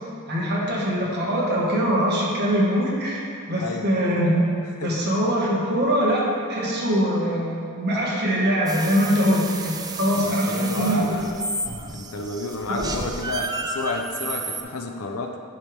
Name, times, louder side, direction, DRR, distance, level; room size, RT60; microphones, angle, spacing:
voice 1, 0.3-4.4 4.8-6.2 6.5-11.2 12.8-12.9, equal, 50° right, -4 dB, 1.5 m, -22 dB
voice 2, 3.6-3.9 4.8-4.9 10.1-11.5 11.9-15.4, left 3 dB, 75° left, 4 dB, 0.6 m, -31 dB
sound 1, 8.7-14.6, right 3 dB, 20° right, 0.4 m, -32 dB
10.0 x 4.7 x 3.4 m, 2.4 s
head